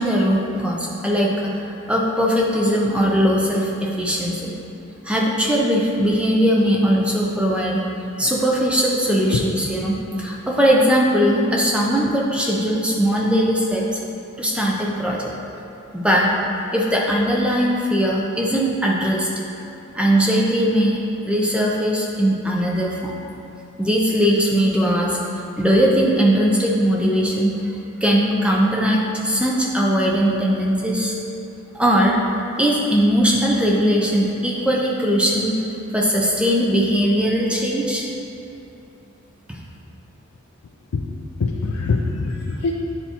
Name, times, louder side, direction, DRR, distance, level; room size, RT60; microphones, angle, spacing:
voice 1, 0.0-4.5 5.0-7.8 8.2-14.0 14.4-15.3 15.9-16.3 16.7-19.3 19.9-21.0 21.2-23.1 23.8-31.1 31.7-32.2 32.6-38.1 39.5-39.6, equal, 5° right, -3 dB, 0.5 m, -20 dB
voice 2, 41.4-42.7, left 4 dB, 75° left, 0 dB, 0.4 m, -23 dB
9.2 x 4.0 x 2.9 m, 2.8 s
head